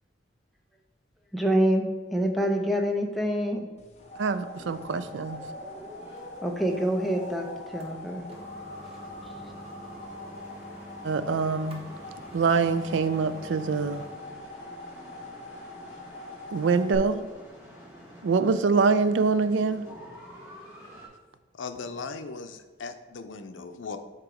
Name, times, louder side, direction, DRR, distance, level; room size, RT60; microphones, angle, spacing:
voice 1, 1.3-3.6 6.4-8.2, right 1 dB, ahead, 1 dB, 0.6 m, -26 dB
sound 1, 3.8-17.0, left 2 dB, 35° left, 0.8 m, -44 dB
voice 2, 4.2-5.4 11.0-11.8 12.3-14.1 16.5-17.3 18.2-19.9, right 4 dB, 80° right, 12 dB, 0.4 m, -24 dB
sound 2, 4.5-21.1, equal, 15° right, 1.6 m, -48 dB
sound 3, 5.2-14.3, equal, 30° right, 0.9 m, -48 dB
voice 3, 21.5-24.0, left 4 dB, 90° left, 8 dB, 0.5 m, -38 dB
7.7 x 3.0 x 4.9 m, 1.4 s
head